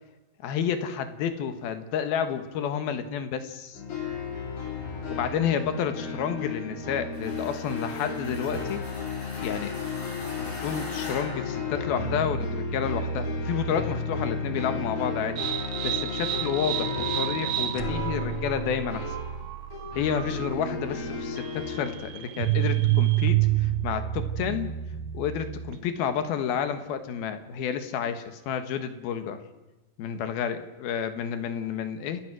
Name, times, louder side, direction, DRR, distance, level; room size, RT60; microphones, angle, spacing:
voice 1, 0.4-3.8 5.1-8.8 9.4-9.8 10.4-15.4 15.8-19.0 20.0-24.7 25.1-29.4 30.0-32.2, left 8 dB, 70° left, 9 dB, 3.1 m, -30 dB
sound 1, 3.7-21.9, left 3 dB, 50° left, 5.0 m, -33 dB
sound 2, 7.1-12.4, left 2 dB, 35° left, 7.8 m, -42 dB
sound 3, 15.4-26.0, right 15 dB, 75° right, 2.6 m, -29 dB
29.5 x 14.5 x 6.3 m, 1.1 s
omnidirectional pair, 4.8 m